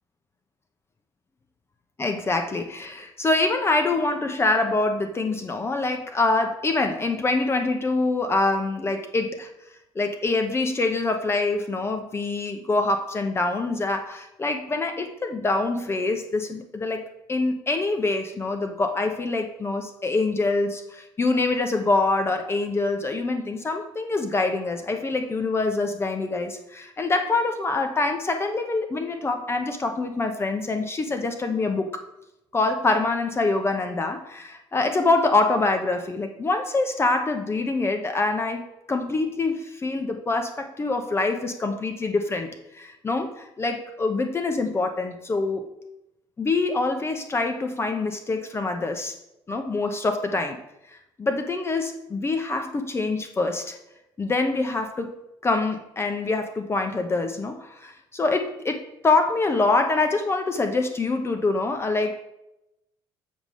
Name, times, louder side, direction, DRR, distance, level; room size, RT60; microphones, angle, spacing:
voice 1, 2.0-9.5 9.9-17.0 17.3-31.9 32.5-40.5 40.8-45.6 46.4-49.1 49.5-50.6 50.9-53.8 54.2-62.1, left 3 dB, 25° left, 5 dB, 0.9 m, -25 dB
7.3 x 3.6 x 6.3 m, 0.88 s
cardioid pair, 95°, 10 cm